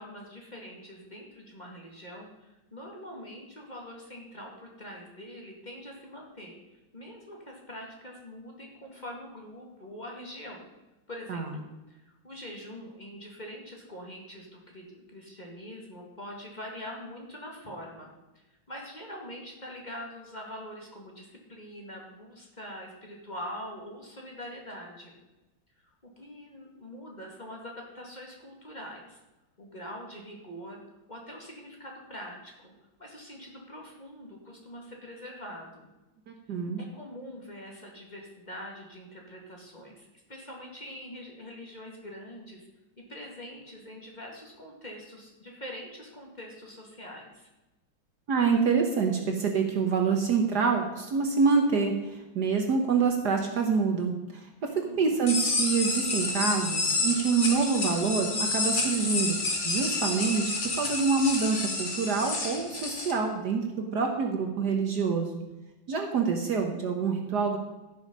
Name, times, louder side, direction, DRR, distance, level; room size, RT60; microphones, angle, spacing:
voice 1, 0.0-6.6 6.9-10.7 11.1-25.2 26.2-29.2 29.6-30.8 31.1-32.7 33.0-35.9 36.8-42.7 43.0-47.5 54.8-55.2, equal, 20° left, -1 dB, 2.2 m, -44 dB
voice 2, 36.3-36.8 48.3-59.4 59.6-65.3 65.9-67.6, right 5 dB, 55° right, 3 dB, 1.5 m, -26 dB
sound 1, 55.3-63.1, left 3 dB, 35° left, 1.8 m, -29 dB
16.0 x 6.4 x 5.5 m, 1.1 s
omnidirectional pair, 2.2 m